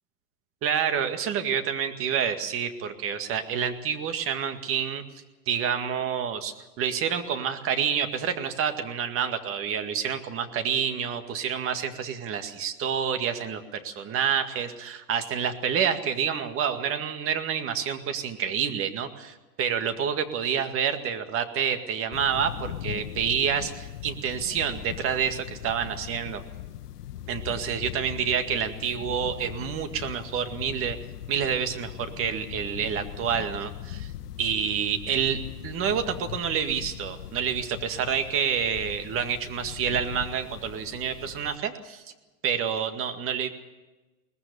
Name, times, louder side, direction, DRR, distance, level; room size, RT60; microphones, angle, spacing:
voice 1, 0.6-5.0 5.5-26.4 27.3-31.0 31.3-34.1 34.4-42.0 42.4-43.5, right 7 dB, 25° right, 8 dB, 2.0 m, -28 dB
sound 1, 22.1-41.6, left 12 dB, 70° left, 1.3 m, -40 dB
22.0 x 19.5 x 6.9 m, 1.1 s
hypercardioid pair, 130°, 48 cm